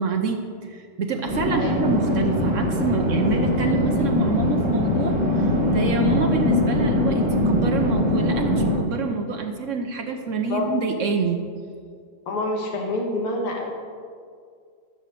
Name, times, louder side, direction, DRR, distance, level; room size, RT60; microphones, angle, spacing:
voice 1, 0.0-11.4, right 4 dB, 85° right, 4 dB, 0.6 m, -27 dB
sound 1, 1.1-2.5, left 3 dB, 50° left, 1.5 m, -34 dB
sound 2, 1.2-8.8, left 1 dB, 55° right, 3.9 m, -22 dB
voice 2, 1.5-1.8 10.5-10.7 12.3-13.7, left 2 dB, 75° left, 0 dB, 2.5 m, -27 dB
15.0 x 6.5 x 6.6 m, 2.1 s
omnidirectional pair, 2.4 m